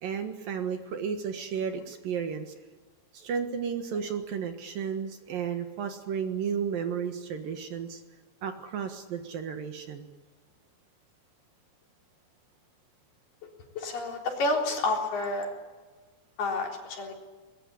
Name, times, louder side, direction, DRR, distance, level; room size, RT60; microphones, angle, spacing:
voice 1, 0.0-2.5 3.1-8.0 8.4-10.1, right 7 dB, 65° right, 6 dB, 2.9 m, -33 dB
voice 2, 13.8-15.5 16.4-17.1, left 2 dB, 65° left, 1 dB, 5.7 m, -29 dB
22.0 x 21.5 x 9.9 m, 1.3 s
omnidirectional pair, 5.0 m